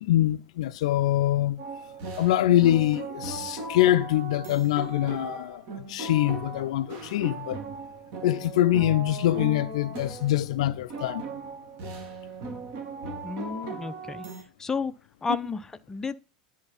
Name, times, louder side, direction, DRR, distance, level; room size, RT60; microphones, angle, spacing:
voice 1, 0.0-1.6 2.2-7.6 8.2-11.2, left 13 dB, 60° left, 0.4 m, -24 dB
sound 1, 1.6-14.4, right 3 dB, 50° right, 2.4 m, -38 dB
voice 2, 13.2-14.2 14.6-14.9 15.2-16.2, left 4 dB, 15° left, 0.6 m, -31 dB
10.5 x 4.6 x 5.7 m
figure-of-eight pair, 80°, 4 cm